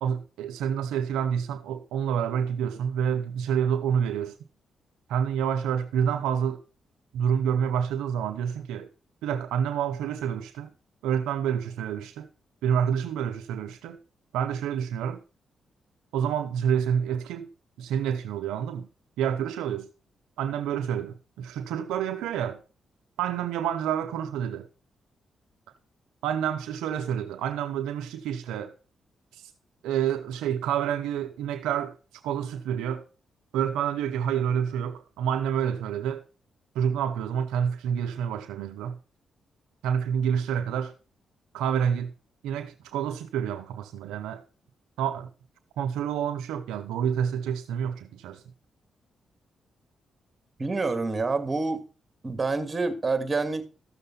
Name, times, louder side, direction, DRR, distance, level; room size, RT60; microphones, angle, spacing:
voice 1, 0.0-4.3 5.1-6.6 7.1-8.9 9.2-10.7 11.0-12.3 12.6-14.0 14.3-15.2 16.1-17.5 17.8-18.9 19.2-19.9 20.4-22.6 23.2-24.7 26.2-28.7 29.3-29.5 29.8-32.0 32.2-33.0 33.5-36.2 36.7-39.0 39.8-40.9 41.5-42.1 42.4-44.4 45.0-45.3 45.8-48.4, right 8 dB, 85° right, 0.7 m, -28 dB
voice 2, 50.6-51.8 52.2-53.6, right 3 dB, 35° right, 2.2 m, -27 dB
13.5 x 6.7 x 4.1 m
supercardioid pair, 50°, 0 cm